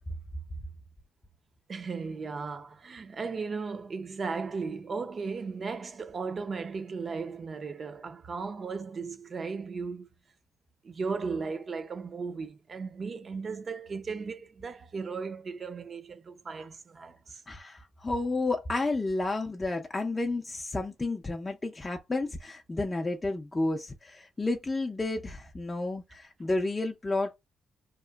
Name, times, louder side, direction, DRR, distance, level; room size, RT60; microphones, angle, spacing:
voice 1, 1.7-10.1 10.8-17.4, right 4 dB, 40° right, 0.5 m, -36 dB
voice 2, 17.5-27.4, left 2 dB, 20° left, 0.4 m, -31 dB
2.8 x 2.4 x 2.3 m
cardioid pair, 95°, 0 cm